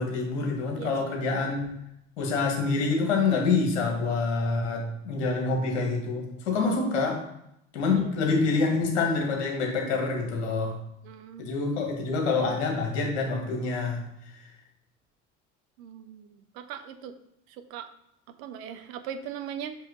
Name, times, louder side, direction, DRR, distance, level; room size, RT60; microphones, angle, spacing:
voice 1, 0.0-1.7 2.2-7.2 7.7-10.8 11.4-14.0, left 4 dB, 65° left, 0 dB, 1.6 m, -26 dB
voice 2, 11.0-11.5 15.8-17.1 17.7-17.9 18.4-19.8, right 8 dB, 60° right, 9 dB, 0.7 m, -39 dB
5.7 x 5.5 x 3.8 m, 0.80 s
figure-of-eight pair, 60°, 37 cm